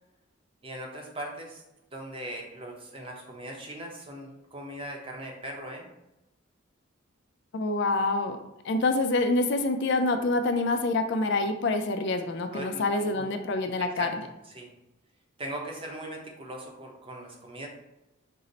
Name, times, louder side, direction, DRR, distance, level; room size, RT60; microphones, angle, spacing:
voice 1, 0.6-1.6 1.9-5.9 12.5-12.8 13.2-13.3 13.8-14.1 14.5-14.7 15.4-17.7, right 1 dB, 30° right, 0 dB, 0.7 m, -39 dB
voice 2, 7.5-8.4 8.6-14.1, left 2 dB, 60° left, 7 dB, 0.4 m, -26 dB
5.3 x 2.0 x 3.9 m, 0.93 s
head